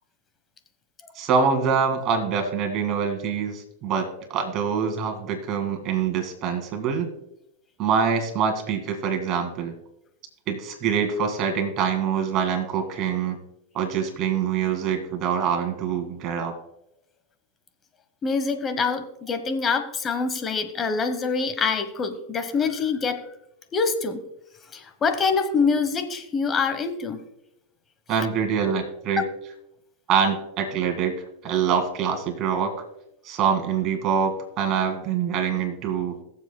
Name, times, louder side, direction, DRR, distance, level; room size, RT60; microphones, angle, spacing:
voice 1, 1.2-7.1 7.8-9.7 10.5-13.4 13.7-16.5 28.1-29.3 30.1-31.2 31.4-32.7 33.2-36.2, right 6 dB, 40° right, 4 dB, 2.0 m, -25 dB
voice 2, 18.2-23.2 23.7-24.2 24.7-27.2, left 5 dB, 25° left, 10 dB, 1.0 m, -25 dB
21.5 x 7.4 x 2.2 m, 0.83 s
supercardioid pair, 125°, 0 cm